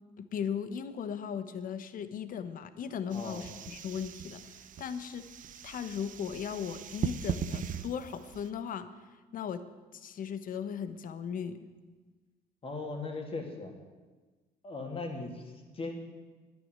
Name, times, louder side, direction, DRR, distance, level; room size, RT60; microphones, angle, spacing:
voice 1, 0.2-5.2 5.6-8.9 9.3-9.6 9.9-11.7, left 7 dB, 55° left, 11 dB, 1.1 m, -37 dB
voice 2, 3.1-3.5 12.6-13.7 14.6-15.9, left 3 dB, 35° left, 3 dB, 2.8 m, -38 dB
sound 1, 3.1-8.5, right 8 dB, 50° right, 0.8 m, -39 dB
10.5 x 9.9 x 9.7 m, 1.3 s
cardioid pair, 110°, 17 cm